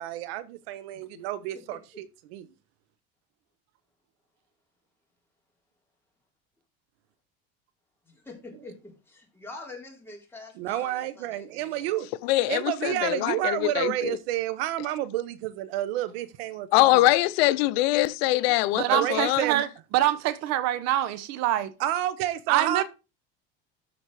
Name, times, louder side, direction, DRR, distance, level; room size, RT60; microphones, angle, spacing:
voice 1, 0.0-2.5 10.6-12.1 12.5-17.0 18.9-19.6 21.8-22.8, right 13 dB, 90° right, 1.1 m, -30 dB
voice 2, 8.1-11.9, left 2 dB, 10° left, 3.4 m, -45 dB
voice 3, 12.2-14.2 16.7-19.4, left 17 dB, 85° left, 0.6 m, -23 dB
voice 4, 18.7-21.7 22.5-22.8, right 13 dB, 60° right, 1.0 m, -25 dB
13.0 x 4.3 x 4.8 m
supercardioid pair, 120°, 30 cm